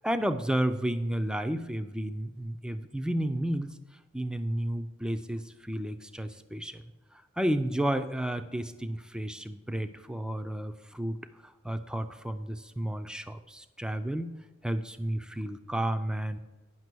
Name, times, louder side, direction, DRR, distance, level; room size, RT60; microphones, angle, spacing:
voice 1, 0.0-3.7 4.1-6.8 7.1-14.3 14.6-16.4, right 1 dB, 5° right, 9 dB, 0.4 m, -32 dB
9.4 x 5.9 x 6.1 m, 1.1 s
head